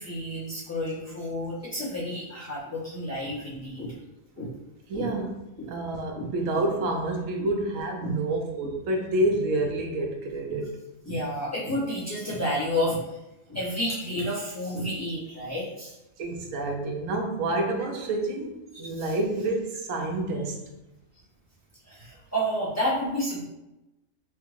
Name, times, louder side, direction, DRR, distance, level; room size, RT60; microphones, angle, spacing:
voice 1, 0.0-3.9 4.4-4.5 4.9-5.1 5.6-5.7 6.1-6.3 8.0-8.1 11.0-13.2 13.5-15.9 18.8-19.1 21.9-23.4, equal, 15° left, -9 dB, 0.9 m, -30 dB
voice 2, 4.9-5.3 5.7-10.8 16.2-20.6, right 2 dB, 85° right, 2 dB, 1.0 m, -28 dB
3.4 x 3.1 x 2.4 m, 0.94 s
omnidirectional pair, 1.3 m